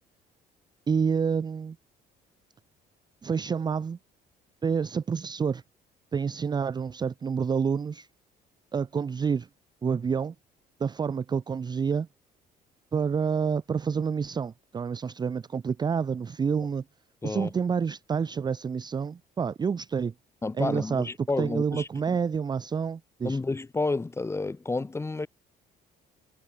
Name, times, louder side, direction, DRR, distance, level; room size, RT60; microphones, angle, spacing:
voice 1, 0.9-1.8 3.2-4.0 4.6-5.6 6.1-8.1 8.7-9.5 9.8-10.3 10.8-12.1 12.9-16.8 17.2-20.1 20.5-21.1 21.4-23.4, right 6 dB, 25° right, 0.5 m, -28 dB
voice 2, 20.4-22.1 23.2-25.3, left 3 dB, 15° left, 0.9 m, -30 dB
cardioid pair, 110°, 17 cm